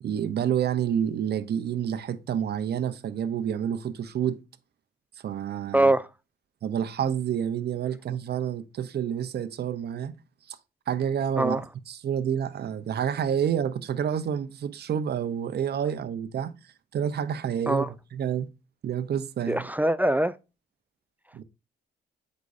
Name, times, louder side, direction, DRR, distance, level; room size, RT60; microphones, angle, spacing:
voice 1, 0.0-4.4 5.2-5.9 6.6-10.1 10.5-10.6 10.9-16.5 16.9-18.5 18.8-19.7 21.3-21.4, right 9 dB, 55° right, 0.8 m, -29 dB
voice 2, 5.7-6.1 11.4-11.6 17.7-17.9 19.5-20.3, right 1 dB, 10° right, 0.4 m, -23 dB
8.1 x 5.4 x 2.7 m
cardioid pair, 90°, 20 cm